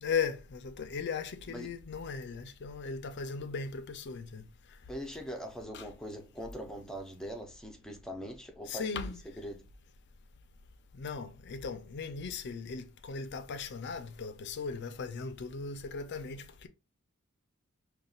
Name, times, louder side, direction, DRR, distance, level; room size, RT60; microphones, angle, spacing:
voice 1, 0.0-4.5 5.7-5.9 8.7-9.2 10.9-16.7, left 5 dB, 55° left, 0.5 m, -37 dB
voice 2, 4.9-9.7, equal, 5° left, 0.6 m, -42 dB
5.3 x 2.3 x 2.3 m
head